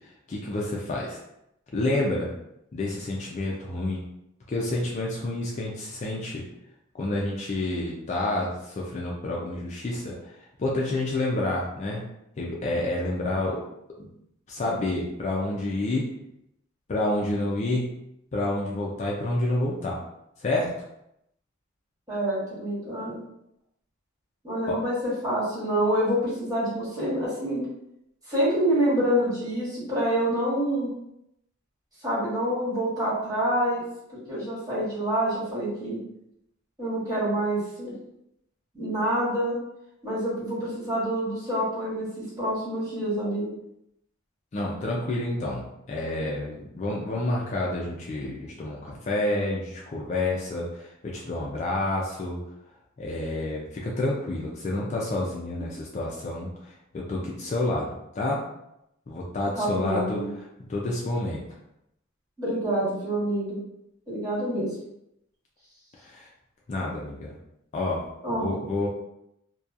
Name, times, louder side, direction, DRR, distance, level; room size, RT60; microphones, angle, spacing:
voice 1, 0.3-1.2 1.7-2.3 2.7-4.0 4.5-6.4 6.9-10.3 10.6-12.0 12.4-13.6 14.0-14.1 14.5-16.0 16.9-17.9 18.3-20.0 20.4-20.7 24.7-24.8 44.5-52.4 53.0-58.4 59.1-61.4 66.0-66.3 66.7-67.4 67.7-68.0 68.3-68.9, left 2 dB, 35° left, -3 dB, 0.3 m, -29 dB
voice 2, 22.1-23.2 24.4-24.9 25.2-27.6 28.3-30.9 32.0-33.8 34.3-36.0 36.8-37.9 38.7-39.6 40.0-43.5 55.5-55.7 59.5-60.3 62.4-63.6 64.1-64.7 68.2-68.5, right 1 dB, 20° right, -11 dB, 1.4 m, -27 dB
2.7 x 2.2 x 2.4 m, 0.81 s
head